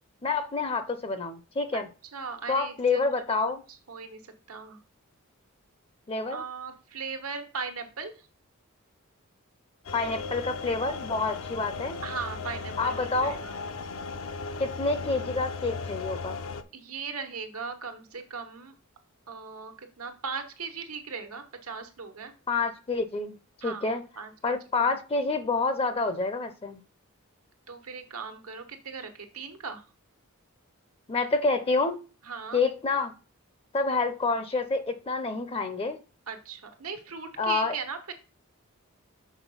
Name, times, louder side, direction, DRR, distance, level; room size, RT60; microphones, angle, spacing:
voice 1, 0.2-1.9 2.5-3.6 6.1-6.4 9.9-12.0 12.8-13.4 14.6-16.4 22.5-23.4 23.6-24.0 24.4-26.8 31.1-32.0 32.5-33.1 33.7-36.0 37.4-37.8, left 3 dB, 25° left, 0.5 m, -28 dB
voice 2, 2.1-3.2 3.7-4.8 6.3-8.3 12.0-13.6 16.7-18.7 19.3-22.3 23.6-23.8 24.2-24.5 24.8-24.9 27.7-29.8 32.2-32.6 36.3-38.1, right 5 dB, 90° right, 1.3 m, -38 dB
sound 1, 9.9-16.6, left 4 dB, 65° left, 0.6 m, -36 dB
6.2 x 4.2 x 5.4 m
head